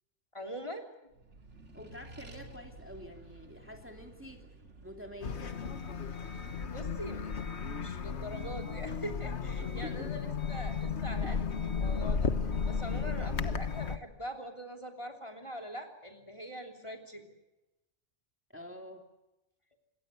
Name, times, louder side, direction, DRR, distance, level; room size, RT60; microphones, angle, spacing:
voice 1, 0.3-0.9 6.6-12.3 12.7-17.2, equal, 25° left, 3 dB, 3.2 m, -43 dB
Accelerating revving vroom, 1.1-12.0, right 2 dB, 90° right, 2.7 m, -55 dB
voice 2, 1.7-4.4 4.8-6.0 9.8-10.2 18.5-19.0, left 1 dB, 10° right, 3 dB, 2.6 m, -47 dB
sound 1, 5.2-14.0, left 5 dB, 70° left, 1.6 m, -34 dB
26.5 x 22.5 x 8.2 m, 0.98 s
omnidirectional pair, 1.2 m